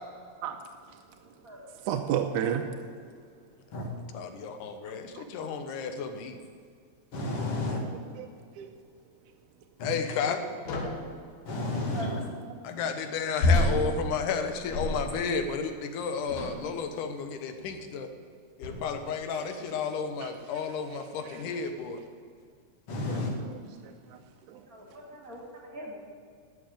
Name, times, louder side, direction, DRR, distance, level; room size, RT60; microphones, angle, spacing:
voice 1, 1.8-2.7 5.2-5.3 5.5-5.6 7.7-8.3 8.6-8.7 20.2-20.3 21.2-21.4 23.1-24.2 24.5-24.7, right 9 dB, 85° right, 2.1 m, -33 dB
voice 2, 4.1-6.4 9.8-10.4 12.6-18.1 18.6-22.0, left 6 dB, 90° left, 2.6 m, -32 dB
voice 3, 7.1-7.8 9.8-9.9 11.5-12.2 22.9-23.3, left 2 dB, 50° left, 2.5 m, -31 dB
sound 1, 10.7-11.2 13.4-15.4 16.3-16.7 17.6-17.8 18.6-19.0, left 1 dB, 65° left, 2.8 m, -28 dB
voice 4, 24.7-26.0, equal, 35° right, 1.8 m, -42 dB
12.5 x 6.6 x 8.9 m
omnidirectional pair, 3.5 m